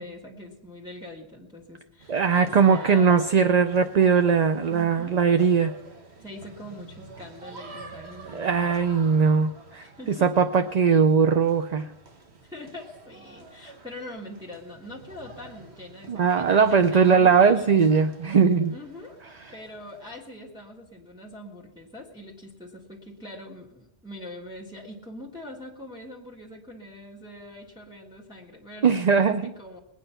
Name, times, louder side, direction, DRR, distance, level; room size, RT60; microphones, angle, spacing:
voice 1, 0.0-3.2 4.7-5.2 6.2-8.8 9.8-10.3 12.4-17.7 18.7-19.2 19.5-29.8, left 1 dB, 5° right, -3 dB, 1.7 m, -43 dB
sound 1, 2.0-20.2, right 2 dB, 75° right, 1.7 m, -46 dB
voice 2, 2.1-5.7 8.3-11.9 16.1-18.8 28.8-29.5, right 6 dB, 45° right, 9 dB, 0.6 m, -20 dB
20.5 x 9.0 x 5.7 m, 0.84 s
omnidirectional pair, 1.1 m